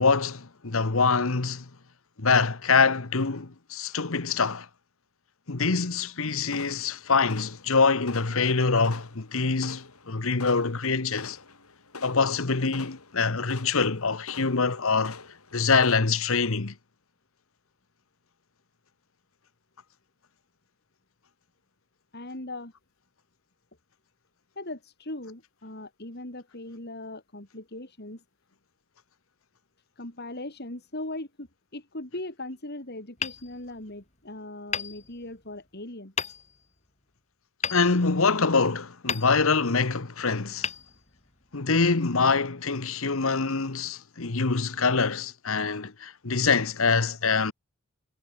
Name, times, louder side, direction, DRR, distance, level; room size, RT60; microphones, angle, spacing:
voice 1, 0.0-1.7 2.2-4.7 5.5-11.4 12.0-15.2 15.5-16.7 37.7-40.7 41.5-47.5, left 4 dB, 65° left, 1.2 m, -24 dB
sound 1, 6.5-16.0, left 4 dB, 85° left, 6.3 m, -46 dB
voice 2, 22.1-22.7 24.6-28.2 30.0-36.1, left 1 dB, 50° left, 3.7 m, -39 dB
Hammer, 33.2-34.2 34.7-35.6 36.2-36.8 37.6-38.6 39.1-39.8 40.6-41.6, left 6 dB, 30° left, 7.5 m, -35 dB
head